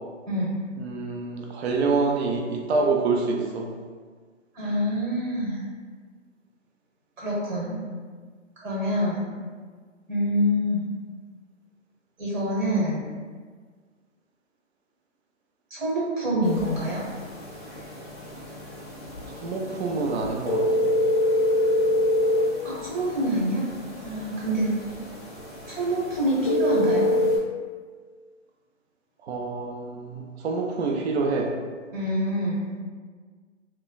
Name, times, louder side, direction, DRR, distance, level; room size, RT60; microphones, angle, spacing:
voice 1, 0.3-0.6 4.5-5.6 7.2-7.8 8.6-9.4 10.1-10.8 12.2-13.1 15.7-17.0 22.6-23.6 24.0-24.7 25.7-27.1 31.9-32.8, equal, 90° right, -6 dB, 1.3 m, -26 dB
voice 2, 0.8-3.7 19.3-20.9 29.2-31.5, right 3 dB, 55° right, 1 dB, 0.5 m, -27 dB
sound 1, 16.4-27.4, left 1 dB, 20° left, 0.4 m, -27 dB
3.2 x 2.2 x 2.2 m, 1.6 s
hypercardioid pair, 145°, 38 cm